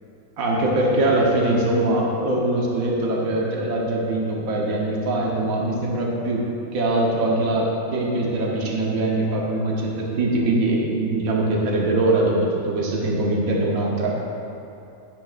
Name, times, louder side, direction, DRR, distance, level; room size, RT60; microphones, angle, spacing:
voice 1, 0.4-14.1, right 2 dB, 70° right, -3 dB, 1.5 m, -22 dB
11.0 x 10.5 x 2.5 m, 2.8 s
omnidirectional pair, 1.6 m